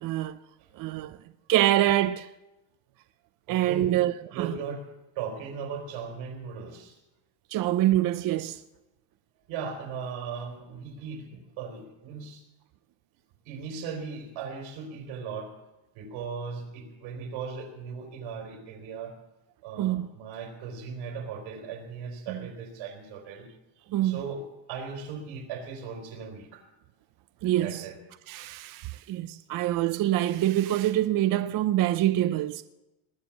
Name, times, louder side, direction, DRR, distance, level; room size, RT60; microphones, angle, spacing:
voice 1, 0.0-0.4 0.8-1.2 1.5-2.3 3.5-4.5 7.5-8.6 19.8-20.1 22.3-22.4 23.9-24.2 27.4-27.8 28.3-32.6, right 13 dB, 45° right, 0.5 m, -25 dB
voice 2, 0.6-1.0 3.5-4.9 5.2-7.0 7.5-7.6 9.5-12.4 13.4-15.5 15.9-19.2 19.6-23.5 24.0-26.7 27.4-28.0, right 5 dB, 85° right, 4.0 m, -38 dB
20.5 x 7.9 x 7.1 m
cardioid pair, 140°, 45 cm